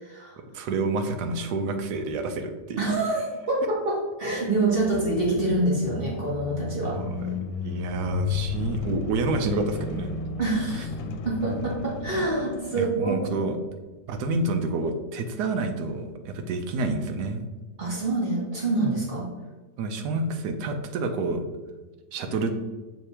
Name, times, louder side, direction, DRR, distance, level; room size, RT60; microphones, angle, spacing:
voice 1, 0.0-0.4 2.8-7.0 10.4-13.2 17.8-19.3, right 2 dB, 35° right, -3 dB, 1.3 m, -26 dB
voice 2, 0.5-2.9 6.9-7.3 7.6-10.2 12.7-13.6 14.1-17.4 19.8-21.4 22.1-22.6, right 3 dB, 70° right, 6 dB, 1.2 m, -28 dB
sound 1, 4.6-13.4, left 5 dB, 80° left, 1.2 m, -34 dB
6.6 x 3.5 x 4.3 m, 1.3 s
omnidirectional pair, 1.9 m